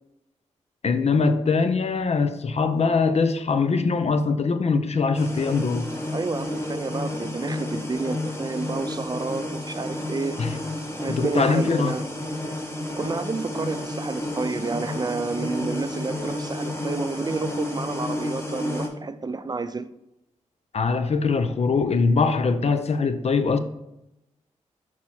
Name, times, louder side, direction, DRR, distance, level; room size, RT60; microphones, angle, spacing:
voice 1, 0.8-5.9 10.4-10.6 11.1-12.0 20.7-23.6, left 4 dB, 55° left, 0.6 m, -22 dB
sound 1, 5.1-18.9, left 1 dB, 20° left, 1.5 m, -31 dB
voice 2, 6.1-10.4 11.0-12.0 13.0-19.9, right 4 dB, 30° right, 0.4 m, -30 dB
6.2 x 4.3 x 4.4 m
cardioid pair, 55°, 13 cm